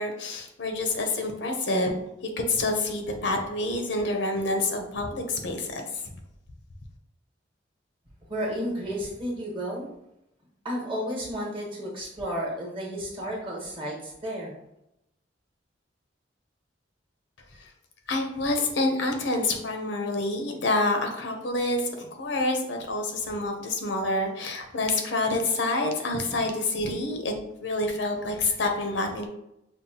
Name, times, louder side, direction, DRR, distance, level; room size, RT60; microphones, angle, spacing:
voice 1, 0.0-2.0 2.4-6.1 17.6-17.7 18.1-27.3 27.6-29.3, left 2 dB, 75° left, 4 dB, 0.6 m, -27 dB
voice 2, 8.3-9.9 10.6-14.5, equal, 30° right, -2 dB, 1.1 m, -32 dB
5.5 x 2.1 x 2.8 m, 0.84 s
head